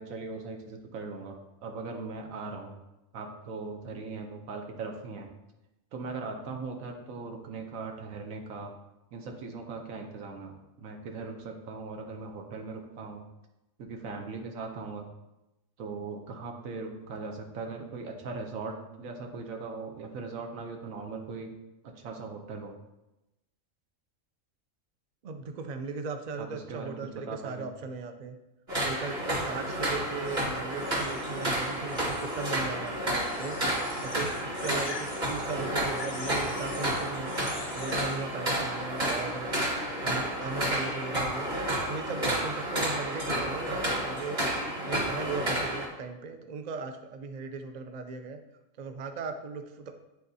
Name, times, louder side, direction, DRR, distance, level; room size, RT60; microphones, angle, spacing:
voice 1, 0.0-2.7 3.1-5.3 5.9-8.7 9.1-13.2 13.8-15.1 15.8-21.5 21.8-22.7 26.5-27.7, right 4 dB, 85° right, 2 dB, 1.2 m, -39 dB
voice 2, 25.2-28.4 28.8-37.3 37.7-39.5 40.0-41.5 41.8-44.4 44.8-48.4 48.8-50.0, right 4 dB, 60° right, 7 dB, 0.4 m, -38 dB
sound 1, 28.7-45.9, right 1 dB, 35° right, 1.7 m, -31 dB
sound 2, 30.3-32.8 33.1-38.3, left 4 dB, 40° left, 0.6 m, -45 dB
10.5 x 3.9 x 2.7 m, 0.96 s
omnidirectional pair, 1.4 m